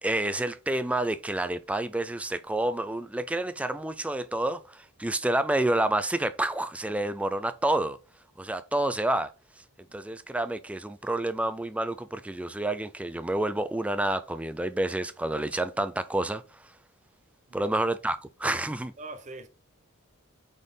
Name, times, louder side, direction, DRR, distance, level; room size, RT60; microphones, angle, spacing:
voice 1, 0.0-8.0 8.4-9.3 9.9-16.4 17.5-18.9, right 1 dB, 5° right, 0.3 m, -29 dB
voice 2, 19.0-19.5, right 2 dB, 35° right, 0.8 m, -42 dB
5.3 x 4.1 x 5.0 m
head